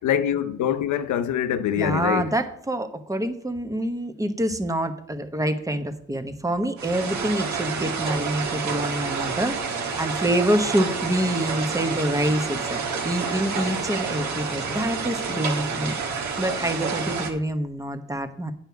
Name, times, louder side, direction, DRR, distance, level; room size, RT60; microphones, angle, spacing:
voice 1, 0.0-2.4, left 9 dB, 75° left, 0.8 m, -24 dB
voice 2, 1.7-15.9 16.4-18.5, right 1 dB, 10° right, 1.0 m, -26 dB
sound 1, 6.8-17.3, right 5 dB, 70° right, 1.5 m, -29 dB
8.9 x 7.2 x 4.6 m
cardioid pair, 90°, 30 cm